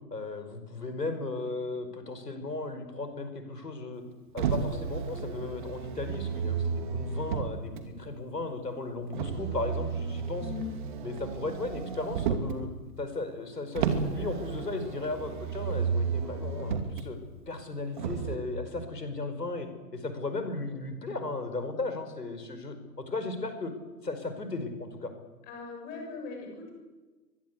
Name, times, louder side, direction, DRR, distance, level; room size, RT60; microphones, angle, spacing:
voice 1, 0.1-4.0 4.3-10.5 11.0-12.7 13.0-17.2 17.5-23.7 24.0-25.1, left 2 dB, 70° left, 8 dB, 5.3 m, -36 dB
Motor vehicle (road), 4.4-7.8 9.1-12.6 13.8-17.0 18.0-18.4, right 6 dB, 30° right, 2.5 m, -32 dB
voice 2, 10.3-10.7 25.5-26.7, left 5 dB, 20° left, 2 dB, 6.8 m, -39 dB
24.5 x 21.5 x 8.4 m, 1.3 s
figure-of-eight pair, 135°, 50 cm